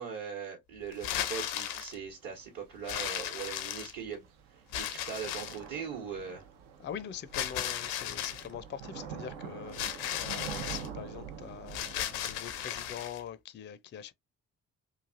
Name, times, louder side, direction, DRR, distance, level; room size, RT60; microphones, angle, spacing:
voice 1, 0.0-6.4, right 6 dB, 55° right, 1.1 m, -40 dB
sound 1, 0.9-2.0 2.9-4.1 4.7-5.7 7.3-8.5 9.7-10.9 11.7-13.2, left 11 dB, 80° left, 0.5 m, -36 dB
Thunder / Rain, 2.1-13.1, right 7 dB, 75° right, 0.7 m, -46 dB
voice 2, 6.8-14.1, left 9 dB, 30° left, 0.4 m, -43 dB
3.1 x 2.4 x 2.5 m
hypercardioid pair, 45°, 42 cm